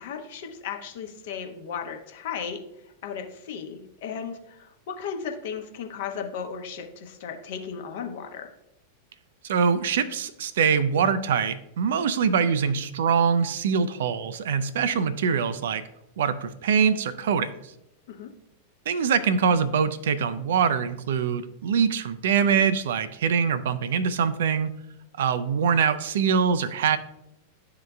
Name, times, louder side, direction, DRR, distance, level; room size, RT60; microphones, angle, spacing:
voice 1, 0.0-2.6 3.0-8.5 18.1-18.3, left 7 dB, 55° left, 4 dB, 0.8 m, -35 dB
voice 2, 9.4-15.8 16.2-17.7 18.9-24.7 25.2-27.0, right 6 dB, 60° right, 14 dB, 0.4 m, -24 dB
11.0 x 3.8 x 2.3 m, 0.85 s
figure-of-eight pair, 90°, 0 cm